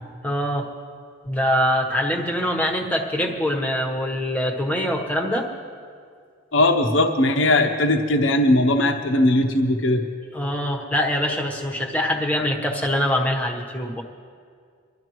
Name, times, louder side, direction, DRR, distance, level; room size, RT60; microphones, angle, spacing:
voice 1, 0.2-0.7 1.2-5.5 10.3-14.0, equal, 5° left, 0 dB, 1.1 m, -24 dB
voice 2, 6.5-10.0, left 1 dB, 60° left, 5 dB, 0.9 m, -19 dB
24.0 x 12.5 x 3.1 m, 2.1 s
head